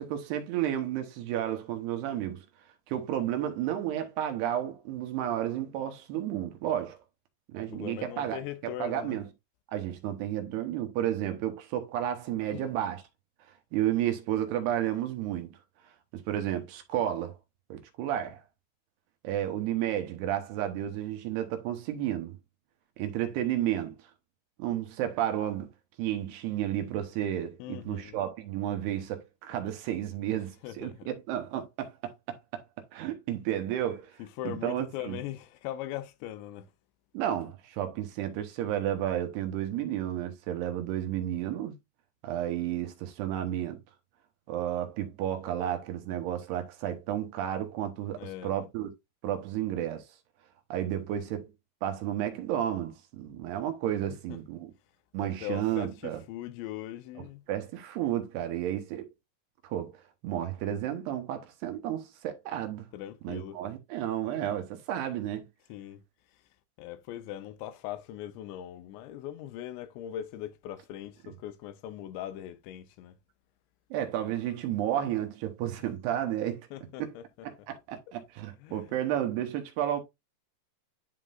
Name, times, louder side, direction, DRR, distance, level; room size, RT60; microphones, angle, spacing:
voice 1, 0.0-2.5 2.9-7.0 7.5-9.3 9.7-13.0 13.7-15.5 16.1-17.3 17.7-18.4 19.2-22.4 23.0-24.0 24.6-25.7 26.0-32.6 32.9-34.1 34.5-35.2 37.1-41.7 42.2-43.8 44.5-48.9 49.2-50.0 50.7-51.5 51.8-54.7 55.1-56.2 57.5-59.1 59.6-60.0 60.2-62.9 63.2-65.5 71.3-71.4 73.9-76.7 77.0-77.1 77.4-80.0, right 11 dB, 75° right, 2.7 m, -32 dB
voice 2, 7.6-9.2 12.5-12.7 27.6-28.2 30.3-30.4 30.6-31.1 34.2-36.7 48.2-48.5 54.3-54.4 55.2-57.4 62.9-63.6 65.7-66.0 66.8-73.2 75.8-75.9 76.7-77.5 78.6-78.9, left 12 dB, 85° left, 2.9 m, -40 dB
11.0 x 3.7 x 2.5 m
omnidirectional pair, 5.2 m